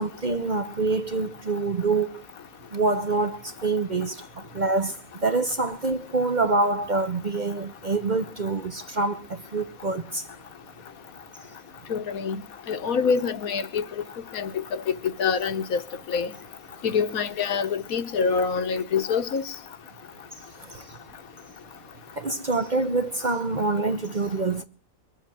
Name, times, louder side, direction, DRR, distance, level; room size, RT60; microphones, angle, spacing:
voice 1, 0.0-2.1 2.7-4.2 4.5-4.9 5.2-10.2 22.2-24.6, right 3 dB, 40° right, 0.8 m, -26 dB
voice 2, 11.9-12.4 12.7-13.8 14.3-15.8 16.1-16.3 16.8-19.5, left 6 dB, 75° left, 1.5 m, -26 dB
22.0 x 8.1 x 7.4 m
omnidirectional pair, 1.5 m